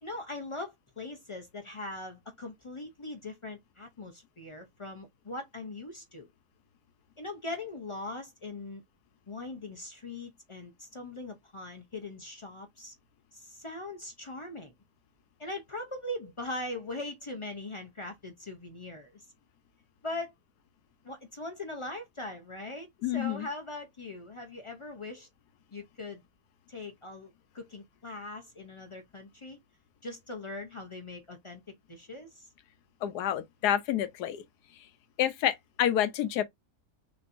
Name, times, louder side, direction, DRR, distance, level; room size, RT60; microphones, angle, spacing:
voice 1, 0.0-6.3 7.2-8.8 9.3-12.9 13.3-14.7 15.4-19.3 20.0-20.3 21.0-25.3 25.7-26.2 26.7-29.6 30.0-32.5, left 2 dB, 50° left, 0.3 m, -41 dB
voice 2, 23.0-23.5 33.0-34.4 35.2-36.4, left 11 dB, 90° left, 1.2 m, -28 dB
6.0 x 2.9 x 2.6 m
omnidirectional pair, 1.7 m